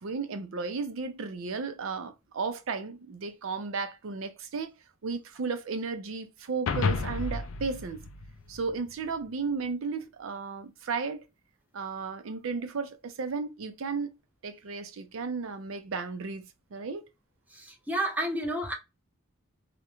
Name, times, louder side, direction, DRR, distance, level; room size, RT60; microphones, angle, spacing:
voice 1, 0.0-4.7 5.0-8.0 8.5-11.2 11.7-14.1 14.4-16.4 16.7-17.1, right 4 dB, 70° right, 0.5 m, -34 dB
sound 1, 6.7-9.1, left 4 dB, 75° left, 0.4 m, -32 dB
voice 2, 17.5-18.7, right 1 dB, 10° right, 0.5 m, -31 dB
2.4 x 2.1 x 2.9 m
head